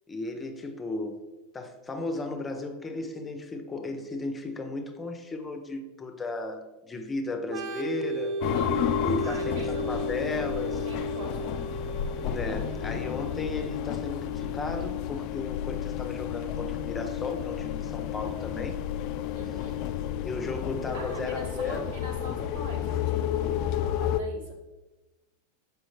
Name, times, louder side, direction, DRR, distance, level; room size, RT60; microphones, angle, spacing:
voice 1, 0.1-8.4 9.0-10.9 12.2-18.8 19.5-19.6 20.2-21.9, left 3 dB, 20° left, 0.7 m, -35 dB
Organ, 7.4-15.0, right 2 dB, 55° right, 0.8 m, -35 dB
sound 1, 8.4-24.2, left 11 dB, 50° left, 0.3 m, -31 dB
voice 2, 8.5-9.9 10.9-11.6 19.3-19.8 20.9-24.6, right 1 dB, 75° right, 1.5 m, -42 dB
6.2 x 4.9 x 3.2 m
hypercardioid pair, 95°, 0 cm